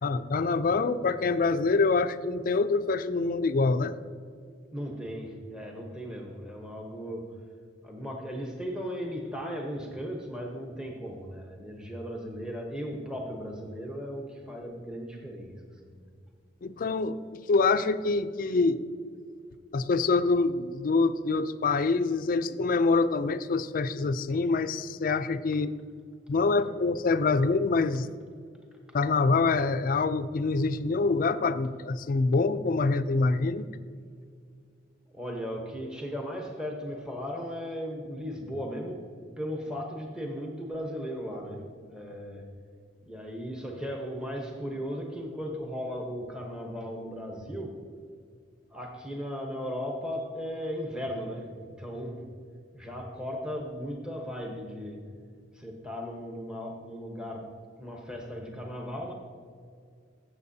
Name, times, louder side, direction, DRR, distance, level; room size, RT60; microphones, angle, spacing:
voice 1, 0.0-3.9 16.6-18.8 19.7-25.7 26.3-28.1 28.9-33.7, left 3 dB, 50° left, 12 dB, 0.4 m, -25 dB
voice 2, 4.7-7.4 7.8-15.5 15.8-16.1 35.1-39.1 39.4-42.5 43.0-47.8 48.7-52.2 52.7-55.1 55.5-59.1, equal, 5° right, 0 dB, 0.9 m, -37 dB
15.0 x 7.5 x 2.7 m, 2.1 s
head